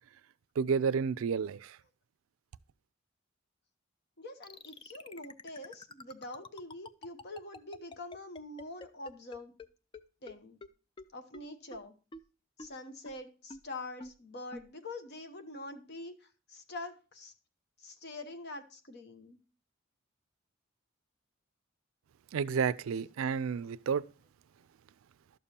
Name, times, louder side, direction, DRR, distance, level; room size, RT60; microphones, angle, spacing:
voice 1, 0.6-1.8 22.3-24.0, right 6 dB, 80° right, 0.4 m, -31 dB
voice 2, 4.2-9.5 10.2-10.6 11.1-11.9 12.6-17.3 17.8-19.4, left 2 dB, 55° left, 0.9 m, -45 dB
sound 1, 4.4-9.7 9.9-10.0 10.3-10.4 10.6-10.7 11.0-11.1 11.3-11.4 11.7-11.8 12.1-12.2 12.6-12.7 13.1-13.2 13.5-13.6 14.0-14.1 14.5-14.6, left 3 dB, 25° left, 0.3 m, -46 dB
12.0 x 7.0 x 2.8 m
head